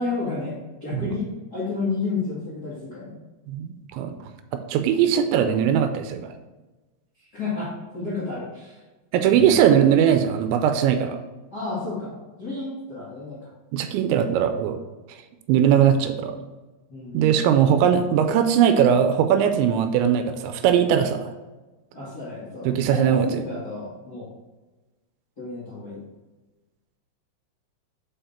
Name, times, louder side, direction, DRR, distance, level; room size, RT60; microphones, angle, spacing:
voice 1, 0.0-3.2 7.3-8.8 9.3-9.5 11.5-13.5 16.9-17.3 21.9-24.3 25.4-26.0, left 3 dB, 60° left, -9 dB, 1.0 m, -31 dB
voice 2, 3.5-4.2 4.7-6.3 9.1-11.2 13.7-14.8 15.5-16.4 17.1-21.3 22.6-23.3, right 9 dB, 85° right, 8 dB, 2.8 m, -20 dB
7.9 x 4.8 x 4.3 m, 1.2 s
omnidirectional pair, 5.4 m